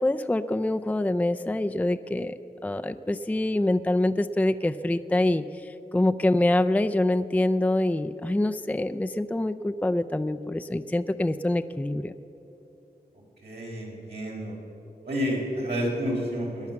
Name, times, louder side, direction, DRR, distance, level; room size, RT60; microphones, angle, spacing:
voice 1, 0.0-2.4 2.6-12.1, left 1 dB, 10° left, 8 dB, 0.5 m, -25 dB
voice 2, 13.4-14.5 15.0-16.7, equal, 80° right, -4 dB, 4.2 m, -30 dB
19.0 x 10.5 x 7.1 m, 2.9 s
wide cardioid pair, 55°, 17 cm